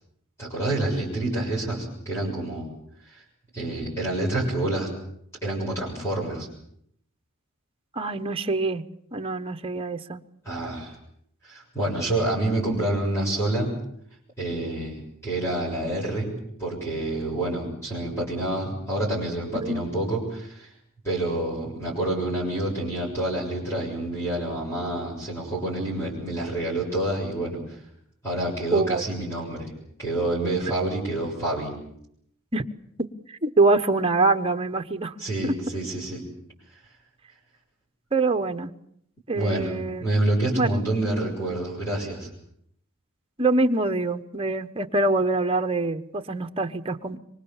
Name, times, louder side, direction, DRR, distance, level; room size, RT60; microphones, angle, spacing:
voice 1, 0.4-2.7 3.1-3.2 3.5-4.9 5.4-6.5 10.4-11.0 11.4-13.7 14.4-16.3 16.6-20.7 21.0-27.8 28.2-29.7 30.0-31.7 35.2-36.2 39.3-39.7 40.0-42.3, right 1 dB, 15° left, -5 dB, 7.0 m, -28 dB
voice 2, 7.9-8.8 9.1-10.2 19.5-19.9 28.7-29.0 32.5-32.6 33.3-35.1 35.4-35.5 38.1-38.7 39.3-40.0 40.5-40.7 43.4-47.2, right 3 dB, 25° right, 8 dB, 1.1 m, -24 dB
25.5 x 24.0 x 7.3 m, 0.72 s
head